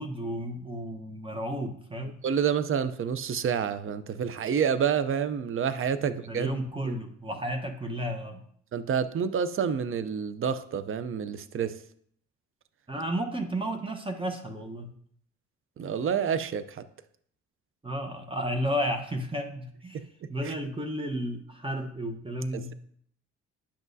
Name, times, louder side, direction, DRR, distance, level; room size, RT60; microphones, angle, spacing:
voice 1, 0.0-2.2 6.0-8.4 12.9-14.9 17.8-20.0 20.3-22.7, equal, 15° right, 4 dB, 1.0 m, -33 dB
voice 2, 2.2-6.5 6.8-7.0 8.7-11.8 15.8-16.8 19.9-20.5 22.5-22.7, right 7 dB, 45° right, 13 dB, 0.6 m, -29 dB
10.0 x 6.1 x 2.7 m, 0.63 s
cardioid pair, 90°, 30 cm